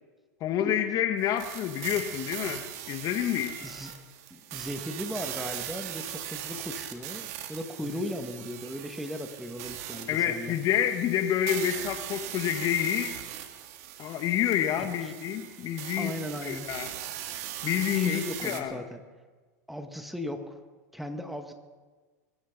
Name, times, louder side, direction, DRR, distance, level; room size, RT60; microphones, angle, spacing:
voice 1, 0.4-3.7 10.1-13.2 14.0-16.1 16.4-16.9 17.6-18.8, left 10 dB, 45° left, 8 dB, 1.3 m, -28 dB
sound 1, 1.4-18.6, right 11 dB, 65° right, 2.0 m, -40 dB
voice 2, 3.6-4.0 4.3-10.6 14.7-14.9 16.0-16.8 17.9-19.0 19.7-20.6 20.9-21.5, left 1 dB, ahead, 6 dB, 1.9 m, -37 dB
23.5 x 13.0 x 4.0 m, 1.4 s
hypercardioid pair, 95°, 9 cm